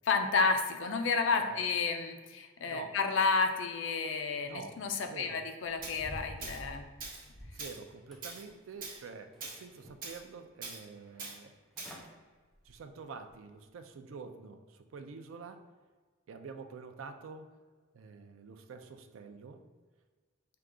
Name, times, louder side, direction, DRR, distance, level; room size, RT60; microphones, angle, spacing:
voice 1, 0.1-6.9, left 4 dB, 65° left, 6 dB, 0.4 m, -31 dB
voice 2, 5.1-5.4 7.5-11.5 12.6-15.7 16.3-17.5 17.9-19.6, right 5 dB, 85° right, 7 dB, 0.4 m, -47 dB
sound 1, 5.7-7.7 8.1-8.9 9.3-10.2 10.6-10.7 11.4-11.5 11.7-12.1 12.5-12.8 13.3-13.4, equal, ahead, 0.5 m, -49 dB
Tools, 5.8-6.0 6.4-6.6 7.0-7.3 7.6-7.8 8.2-8.4 8.8-9.0 9.4-9.6 10.0-10.2 10.6-10.8 11.2-11.4 11.8-12.0, right 3 dB, 45° right, 0.8 m, -42 dB
4.7 x 2.3 x 3.6 m, 1.4 s
head